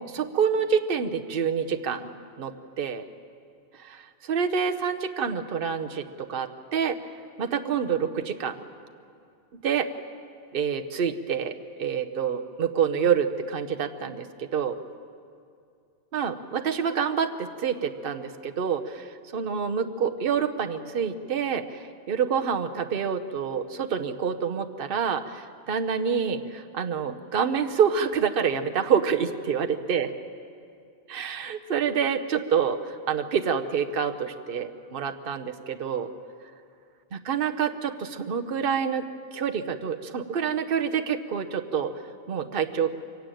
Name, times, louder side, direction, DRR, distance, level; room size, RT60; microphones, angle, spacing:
voice 1, 0.0-2.1 2.4-3.0 3.8-7.0 7.4-8.6 9.5-9.9 10.5-11.5 11.8-14.8 16.1-19.1 19.3-30.1 31.1-36.1 37.1-39.1 39.3-41.9 42.3-42.9, right 7 dB, 55° right, 6 dB, 1.1 m, -27 dB
23.5 x 16.5 x 9.1 m, 2.4 s
omnidirectional pair, 1.2 m